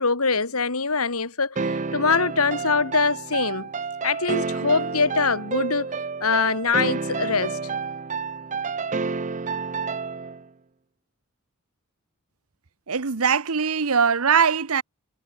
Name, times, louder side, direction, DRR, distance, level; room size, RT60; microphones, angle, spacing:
voice 1, 0.0-3.7 4.0-5.9 6.2-7.6, left 4 dB, 80° left, 2.6 m, -23 dB
sound 1, 1.6-10.4, right 4 dB, 35° right, 0.7 m, -29 dB
voice 2, 12.9-14.8, right 6 dB, 75° right, 1.0 m, -21 dB
head